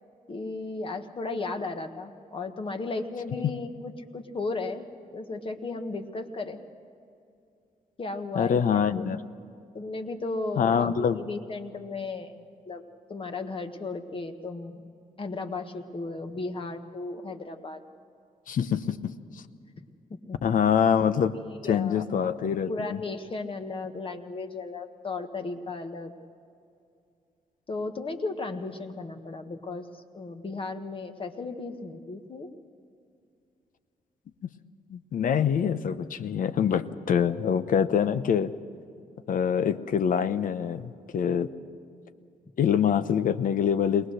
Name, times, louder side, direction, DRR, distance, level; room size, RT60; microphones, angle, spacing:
voice 1, 0.3-4.9 5.1-6.6 8.0-8.8 9.7-12.4 12.7-12.8 13.1-14.9 15.2-17.8 19.8-20.4 21.3-22.0 22.7-26.1 27.7-32.5, left 3 dB, 35° left, 6 dB, 1.5 m, -35 dB
voice 2, 8.3-9.2 10.6-11.2 18.5-19.1 20.4-21.3 21.7-23.0 34.9-38.5 39.3-41.5 42.6-44.1, left 8 dB, 65° left, 12 dB, 0.8 m, -25 dB
23.0 x 19.0 x 6.5 m, 2.5 s
cardioid pair, 110°, 15 cm